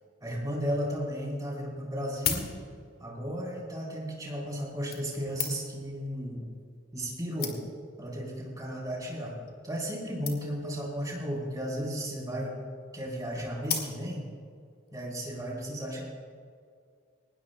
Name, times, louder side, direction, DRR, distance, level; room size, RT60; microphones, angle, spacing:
voice 1, 0.2-2.5 3.0-6.4 6.9-7.6 8.0-9.3 9.6-12.6 12.9-14.3 14.9-16.0, equal, 20° right, -3 dB, 4.0 m, -34 dB
sound 1, 1.1-1.2 1.9-3.0 3.9-4.1 4.9-5.9 6.7-6.8 7.1-7.2 7.4-7.9 8.6-8.9 9.2-9.3 9.5-9.6 9.8-9.9 10.3-10.7 11.7-12.2 13.6-14.3 14.9-15.0, left 8 dB, 50° left, 1.9 m, -36 dB
20.0 x 19.5 x 2.3 m, 2.2 s
head